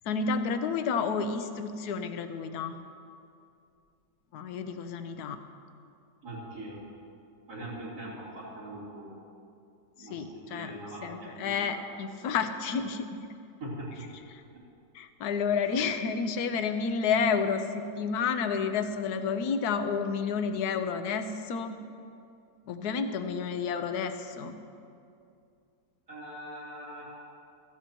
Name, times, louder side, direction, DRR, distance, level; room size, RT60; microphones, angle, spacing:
voice 1, 0.1-2.8 4.3-5.4 10.0-13.3 14.3-14.4 14.9-21.8 22.7-24.5, left 5 dB, 70° left, 8 dB, 1.2 m, -30 dB
voice 2, 6.2-6.8 7.5-9.2 10.0-11.9 13.6-14.1 26.1-27.2, right 1 dB, 65° right, -10 dB, 3.9 m, -42 dB
15.0 x 15.0 x 3.0 m, 2.5 s
omnidirectional pair, 1.9 m